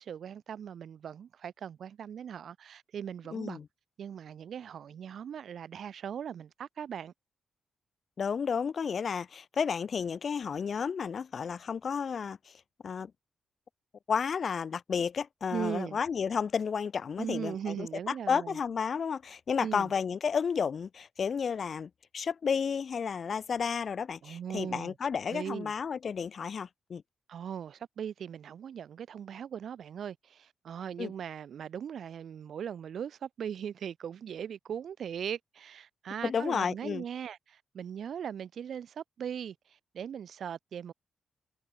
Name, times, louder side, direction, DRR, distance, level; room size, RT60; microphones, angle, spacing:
voice 1, 0.0-3.6 4.0-7.1 15.5-16.0 17.2-18.6 19.6-19.9 24.2-24.9 25.3-25.7 27.3-40.9, right 8 dB, 60° right, 7.6 m, -39 dB
voice 2, 3.3-3.6 8.2-12.4 12.8-13.1 14.1-27.0 31.0-31.1 36.2-37.0, left 6 dB, 45° left, 1.7 m, -32 dB
wide cardioid pair, 155°, 0 cm